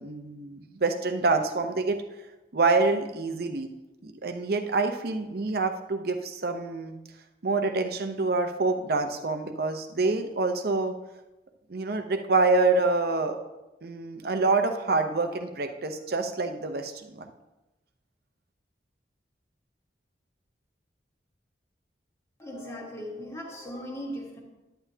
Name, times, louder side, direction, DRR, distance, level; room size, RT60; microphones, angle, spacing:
voice 1, 0.0-2.0 2.5-3.7 4.0-6.9 7.4-10.9 11.7-13.4 13.8-17.3, right 3 dB, 60° right, 6 dB, 0.8 m, -26 dB
voice 2, 22.4-24.4, equal, 15° left, -1 dB, 1.6 m, -38 dB
10.0 x 9.1 x 2.8 m, 1.0 s
head